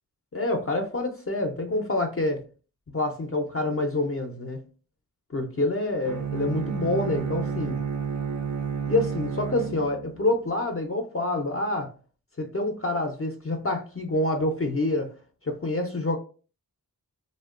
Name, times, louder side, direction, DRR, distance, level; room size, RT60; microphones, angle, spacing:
voice 1, 0.3-2.4 2.9-4.6 5.3-7.8 8.9-11.9 12.4-15.1 15.4-16.2, left 2 dB, 35° left, 2 dB, 0.4 m, -27 dB
Bowed string instrument, 6.0-10.2, right 6 dB, 50° right, 0.5 m, -31 dB
2.8 x 2.1 x 2.3 m, 0.36 s
wide cardioid pair, 55°, 38 cm